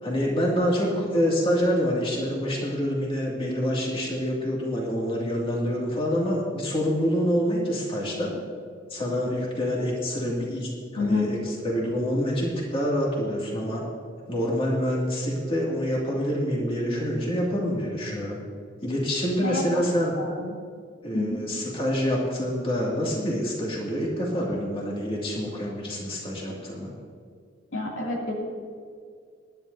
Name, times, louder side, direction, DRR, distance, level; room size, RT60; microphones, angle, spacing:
voice 1, 0.0-8.3 8.9-13.8 14.3-18.4 18.8-20.1 21.0-26.9, equal, 30° left, -4 dB, 2.4 m, -26 dB
voice 2, 10.9-11.3 19.4-19.9 20.1-20.5 21.1-21.4 27.7-28.3, left 2 dB, 80° left, -3 dB, 2.7 m, -28 dB
21.0 x 11.0 x 2.8 m, 2.1 s
head